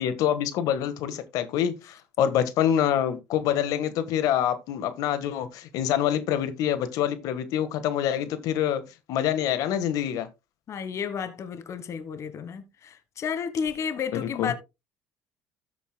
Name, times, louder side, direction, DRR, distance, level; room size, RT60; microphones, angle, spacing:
voice 1, 0.0-1.7 2.2-8.8 9.1-10.3 14.4-14.5, left 10 dB, 70° left, 1.4 m, -26 dB
voice 2, 10.7-14.5, left 7 dB, 50° left, 1.3 m, -32 dB
13.0 x 8.2 x 2.2 m
supercardioid pair, 80°, 6 cm